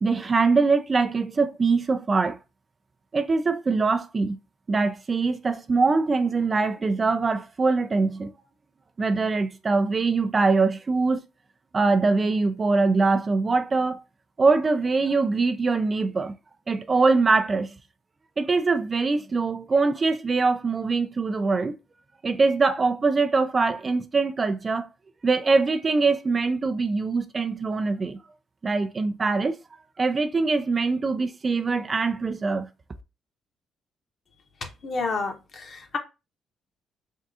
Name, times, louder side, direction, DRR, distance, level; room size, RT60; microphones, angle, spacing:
voice 1, 0.0-2.4 3.1-4.4 4.7-8.3 9.0-11.2 11.7-14.0 14.4-16.3 16.7-17.7 18.4-21.7 22.2-24.9 25.2-28.2 28.6-29.6 30.0-32.7, right 4 dB, 35° right, 0.4 m, -23 dB
voice 2, 34.8-36.0, left 4 dB, 50° left, 1.0 m, -30 dB
3.5 x 2.4 x 4.1 m
cardioid pair, 90°, 0 cm